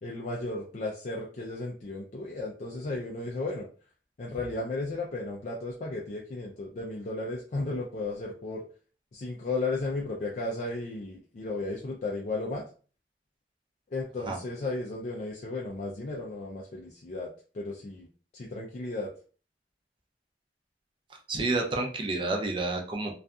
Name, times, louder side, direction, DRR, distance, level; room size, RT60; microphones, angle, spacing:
voice 1, 0.0-3.7 4.2-8.6 9.1-12.6 13.9-18.1 18.3-19.1, left 2 dB, 40° left, -2 dB, 0.4 m, -34 dB
voice 2, 21.3-23.1, right 2 dB, 30° right, 1 dB, 0.5 m, -29 dB
2.6 x 2.3 x 2.3 m, 0.40 s
head